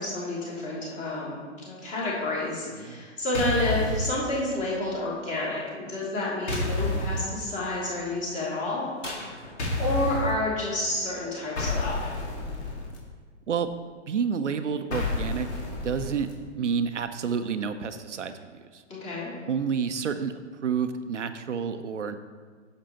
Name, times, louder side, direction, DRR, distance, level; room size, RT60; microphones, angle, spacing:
voice 1, 0.0-1.4 1.7-9.1 9.8-12.2 18.9-19.3, left 2 dB, 20° left, -5 dB, 2.6 m, -30 dB
voice 2, 2.7-3.0 13.5-13.7 14.1-15.5 15.8-18.8 19.5-20.3 20.6-22.2, right 6 dB, 75° right, 9 dB, 0.6 m, -29 dB
sound 1, 3.3-4.1 6.5-7.2 9.6-10.3 11.6-13.0 14.9-16.3, left 2 dB, 60° left, 2.2 m, -29 dB
sound 2, 6.5-6.7 9.0-10.0, left 1 dB, 90° left, 2.1 m, -39 dB
10.5 x 6.7 x 2.9 m, 1.5 s
figure-of-eight pair, 120°, 36 cm